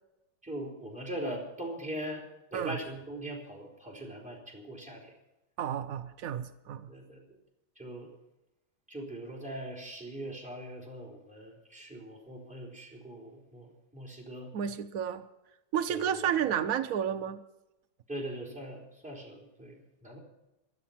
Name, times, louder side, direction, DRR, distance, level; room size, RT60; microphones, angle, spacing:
voice 1, 0.4-2.2 2.5-5.1 6.9-7.4 7.8-8.1 8.9-14.5 15.9-16.3 18.1-20.2, right 1 dB, 5° right, -1 dB, 4.2 m, -41 dB
voice 2, 5.6-6.9 14.5-15.2 15.7-17.4, right 9 dB, 90° right, 9 dB, 0.7 m, -31 dB
16.5 x 12.0 x 5.8 m, 0.94 s
omnidirectional pair, 2.4 m